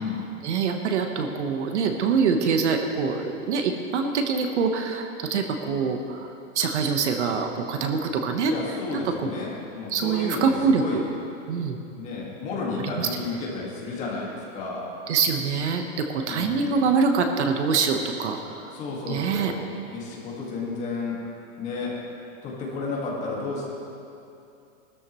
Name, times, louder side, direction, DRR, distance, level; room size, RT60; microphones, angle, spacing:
voice 1, 0.4-8.5 8.9-9.3 9.9-11.0 11.5-11.8 12.9-13.1 15.1-18.7 19.1-19.5, right 5 dB, 60° right, 5 dB, 1.2 m, -25 dB
voice 2, 8.5-11.0 12.0-14.9 16.3-16.8 18.7-19.6 19.9-21.2 21.6-22.0 22.4-23.6, left 3 dB, 20° left, -4 dB, 1.9 m, -32 dB
19.5 x 13.0 x 3.1 m, 2.7 s
supercardioid pair, 175°, 39 cm